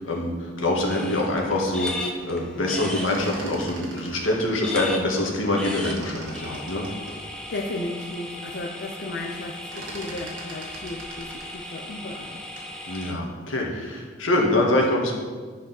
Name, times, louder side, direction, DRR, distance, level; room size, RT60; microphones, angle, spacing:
voice 1, 0.0-6.9 12.9-15.1, left 1 dB, 80° left, -1 dB, 1.8 m, -25 dB
sound 1, 0.9-13.1, left 1 dB, 5° left, 0.8 m, -37 dB
sound 2, 2.9-5.3 5.6-7.7 8.2-8.3 8.6-9.0 9.2-12.8, right 1 dB, 75° right, 2.1 m, -42 dB
voice 2, 7.5-12.4, left 2 dB, 55° left, -2 dB, 0.7 m, -34 dB
10.5 x 4.9 x 6.0 m, 1.5 s
head